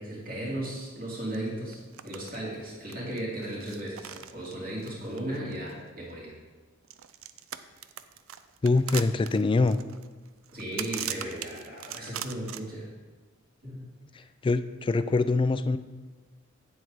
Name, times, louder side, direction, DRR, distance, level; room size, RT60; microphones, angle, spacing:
voice 1, 0.0-6.3 10.5-12.9 13.6-13.8, right 1 dB, 45° right, -4 dB, 2.6 m, -36 dB
sound 1, 1.3-1.4 1.7-2.4 2.6-5.9 6.8-12.6, right 11 dB, 85° right, 0.4 m, -40 dB
voice 2, 8.6-9.8 14.1-15.8, left 3 dB, 25° left, 12 dB, 0.3 m, -24 dB
8.6 x 7.6 x 4.0 m, 1.3 s
head